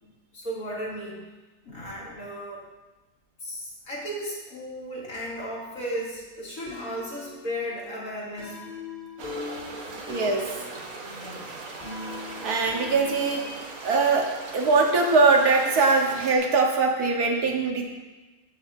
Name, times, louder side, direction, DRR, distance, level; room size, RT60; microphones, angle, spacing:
voice 1, 0.0-1.2 1.6-2.6 3.4-8.6 11.1-11.4, equal, 65° left, -6 dB, 3.2 m, -35 dB
sound 1, 6.7-13.5, left 3 dB, 35° left, 4.1 m, -41 dB
sound 2, 9.2-16.4, right 3 dB, 65° right, 1.6 m, -39 dB
voice 2, 10.1-10.4 12.4-13.5 13.8-17.8, right 3 dB, 80° right, 1 dB, 1.8 m, -22 dB
16.5 x 7.0 x 2.7 m, 1.2 s
omnidirectional pair, 1.6 m